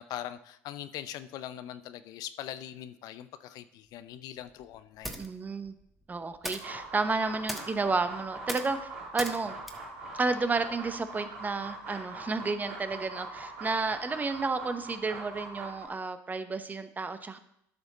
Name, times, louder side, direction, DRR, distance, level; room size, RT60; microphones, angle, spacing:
voice 1, 0.0-5.2, left 11 dB, 60° left, 13 dB, 0.5 m, -41 dB
sound 1, 3.9-11.1, equal, ahead, 1.2 m, -43 dB
voice 2, 5.2-5.7 6.1-9.6 10.1-17.4, right 3 dB, 25° right, 10 dB, 0.8 m, -31 dB
sound 2, 6.5-15.9, right 3 dB, 80° right, 3.8 m, -42 dB
12.0 x 5.0 x 4.0 m, 0.76 s
hypercardioid pair, 80°, 7 cm